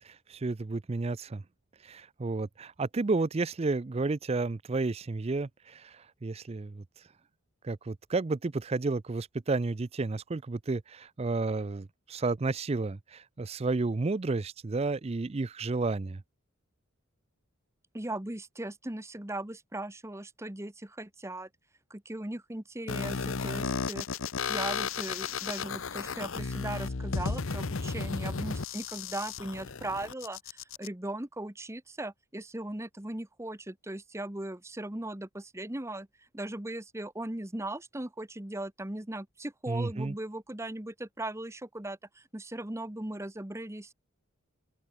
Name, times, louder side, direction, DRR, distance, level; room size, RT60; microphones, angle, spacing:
voice 1, 0.0-1.4 1.8-6.8 7.6-16.2 39.7-40.2, right 3 dB, 30° right, 0.4 m, -31 dB
voice 2, 17.9-21.5 21.9-24.1 24.5-36.1 36.3-43.9, right 1 dB, 15° right, 1.1 m, -38 dB
sound 1, 22.9-30.9, left 5 dB, 65° left, 0.8 m, -34 dB
head